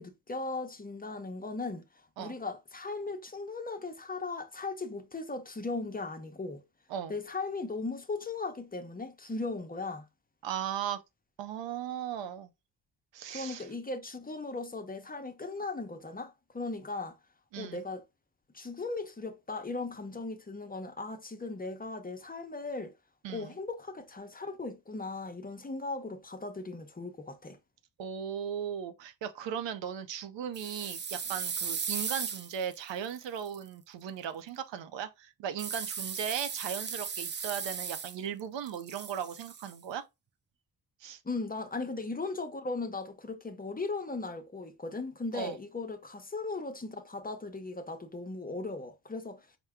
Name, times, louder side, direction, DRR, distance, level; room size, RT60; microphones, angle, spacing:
voice 1, 0.0-1.8 2.2-6.6 7.1-10.1 13.3-17.2 17.6-18.0 18.5-22.9 23.3-27.6 41.2-49.5, left 3 dB, 20° left, 0.6 m, -38 dB
voice 2, 10.4-11.0 11.4-12.5 13.1-13.7 17.5-17.8 23.2-23.5 28.0-40.1 41.0-41.2 45.3-45.6, right 8 dB, 80° right, 0.7 m, -37 dB
sound 1, 30.5-33.6 35.6-38.4 38.7-39.7, right 6 dB, 25° right, 0.4 m, -37 dB
4.4 x 2.2 x 3.5 m
cardioid pair, 70°, 43 cm